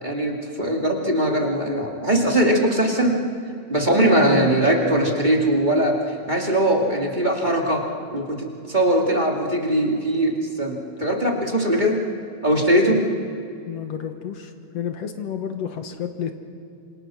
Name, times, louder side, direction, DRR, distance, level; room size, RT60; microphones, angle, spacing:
voice 1, 0.0-3.2 3.7-12.0 12.4-13.0, right 1 dB, 15° right, 0 dB, 2.2 m, -21 dB
voice 2, 13.7-16.3, left 9 dB, 65° left, 6 dB, 2.3 m, -31 dB
27.0 x 26.5 x 6.2 m, 2.6 s
omnidirectional pair, 3.3 m